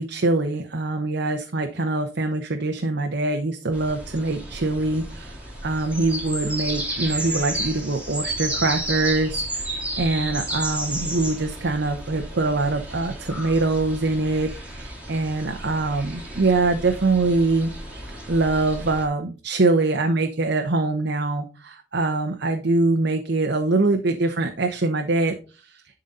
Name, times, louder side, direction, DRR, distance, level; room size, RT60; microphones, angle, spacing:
voice 1, 0.0-5.4 5.6-25.8, right 2 dB, 65° right, 5 dB, 0.9 m, -24 dB
sound 1, 3.7-19.1, right 1 dB, 5° right, 2.8 m, -32 dB
11.5 x 3.9 x 4.2 m, 0.34 s
head